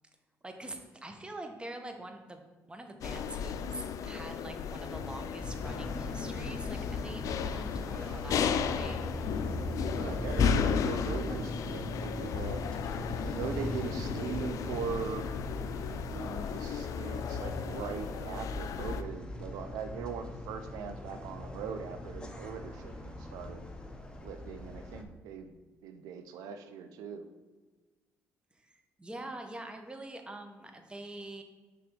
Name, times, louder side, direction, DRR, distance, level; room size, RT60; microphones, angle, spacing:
voice 1, 0.4-9.5 28.5-31.4, right 2 dB, 15° right, 5 dB, 0.9 m, -45 dB
sound 1, 3.0-19.0, left 7 dB, 65° left, 0.4 m, -34 dB
sound 2, 5.4-25.0, left 1 dB, 15° left, 0.8 m, -40 dB
voice 2, 9.9-12.6 13.2-15.4 16.1-23.7 24.2-25.6 25.8-27.3, right 6 dB, 85° right, 7 dB, 0.5 m, -40 dB
6.0 x 3.4 x 5.1 m, 1.3 s
cardioid pair, 75°, 6 cm